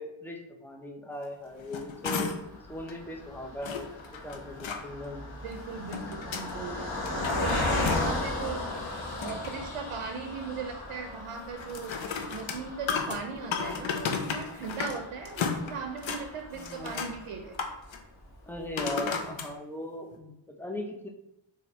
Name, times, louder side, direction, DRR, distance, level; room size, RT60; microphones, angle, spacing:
voice 1, 0.0-2.3 2.7-4.0 4.2-5.2 16.5-17.1 18.5-21.1, left 1 dB, 5° left, 1 dB, 0.4 m, -39 dB
sound 1, 1.5-2.6 2.9-3.0 3.6-4.8 5.6-6.5 6.9-8.3 8.6-9.7 11.6-15.0 15.3-16.2 16.6-17.2 17.5-18.0 18.8-19.5 20.1-20.2, left 6 dB, 70° left, 0.6 m, -34 dB
Car passing by, 2.2-17.7 18.2-18.3 18.5-18.7, left 2 dB, 50° left, 0.9 m, -36 dB
voice 2, 5.4-6.8 7.1-8.6 9.2-11.9 12.3-17.6 19.0-19.2, right 5 dB, 85° right, 5 dB, 0.6 m, -38 dB
4.1 x 2.6 x 4.1 m, 0.85 s
wide cardioid pair, 175°, 49 cm